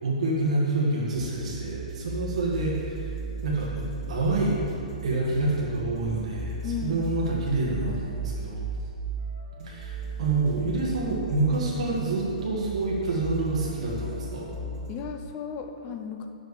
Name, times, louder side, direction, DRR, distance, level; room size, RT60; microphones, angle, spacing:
voice 1, 0.0-3.1 3.4-4.5 5.0-8.6 9.6-14.5, right 2 dB, 55° right, -4 dB, 1.7 m, -27 dB
sound 1, 1.1-15.0, right 2 dB, 35° right, 2.1 m, -36 dB
voice 2, 6.6-7.1 14.9-16.3, left 6 dB, 20° left, 5 dB, 0.5 m, -35 dB
7.2 x 6.1 x 6.6 m, 2.6 s
hypercardioid pair, 175°, 4 cm